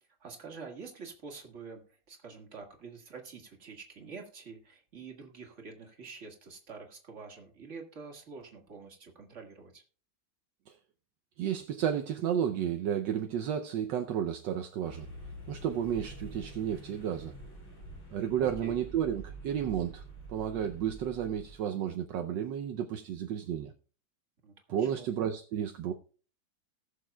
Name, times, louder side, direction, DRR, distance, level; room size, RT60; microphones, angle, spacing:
voice 1, 0.2-9.8 18.4-18.8 24.4-25.1, right 5 dB, 40° right, 2.0 m, -47 dB
voice 2, 11.4-15.1 15.5-17.3 18.1-20.0 20.3-23.7 24.7-25.9, right 9 dB, 70° right, 1.3 m, -32 dB
sound 1, 14.8-21.6, right 2 dB, 90° left, 6.5 m, -47 dB
19.5 x 6.7 x 2.3 m
omnidirectional pair, 2.1 m